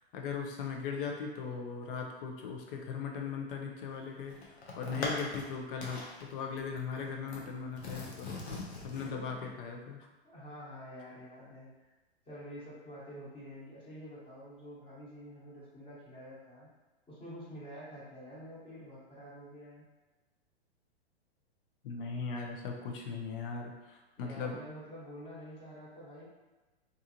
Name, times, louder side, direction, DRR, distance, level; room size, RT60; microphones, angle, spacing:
voice 1, 0.1-4.3 4.8-8.4 8.8-10.0 21.8-24.5, left 5 dB, 55° left, 2 dB, 0.6 m, -38 dB
sound 1, 3.9-5.5 5.8-6.2 6.6-7.4 7.8-9.1, left 2 dB, 90° left, 0.8 m, -40 dB
voice 2, 4.8-5.3 9.0-9.5 10.2-11.7 12.2-16.7 17.1-19.9 24.2-26.3, equal, 15° left, -8 dB, 1.1 m, -48 dB
2.6 x 2.4 x 2.8 m, 1.1 s
hypercardioid pair, 125°, 32 cm